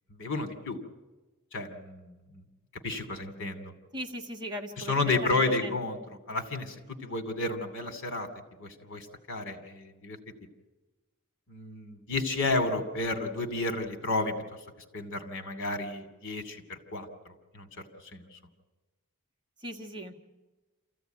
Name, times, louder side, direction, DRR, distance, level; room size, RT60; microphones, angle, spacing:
voice 1, 0.1-0.8 1.5-2.4 2.8-3.7 4.8-6.0 6.3-8.3 8.6-10.2 11.5-14.3 14.9-17.7 18.0-18.3, left 2 dB, 60° left, 7 dB, 2.7 m, -32 dB
voice 2, 3.9-4.9 5.2-5.7 19.6-20.3, equal, 20° right, 1 dB, 1.7 m, -38 dB
27.5 x 15.0 x 9.2 m, 1.2 s
head